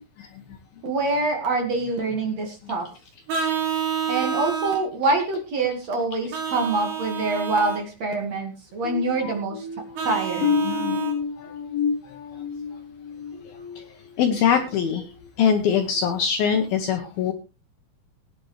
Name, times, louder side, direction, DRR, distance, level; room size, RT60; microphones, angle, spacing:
voice 1, 0.8-2.9 4.1-9.7 10.0-10.5, right 3 dB, 50° right, 3 dB, 2.1 m, -25 dB
Vehicle horn car horn honking, 3.3-4.8 6.3-7.8 10.0-11.2, right 7 dB, 80° right, 5.3 m, -28 dB
sound 1, 8.8-14.5 14.9-15.2 15.7-15.9, left 6 dB, 55° left, 4.2 m, -30 dB
voice 2, 10.6-11.0 14.2-15.0 15.4-17.3, left 7 dB, 75° left, 5 dB, 2.2 m, -22 dB
20.0 x 9.8 x 3.2 m, 0.30 s
omnidirectional pair, 5.6 m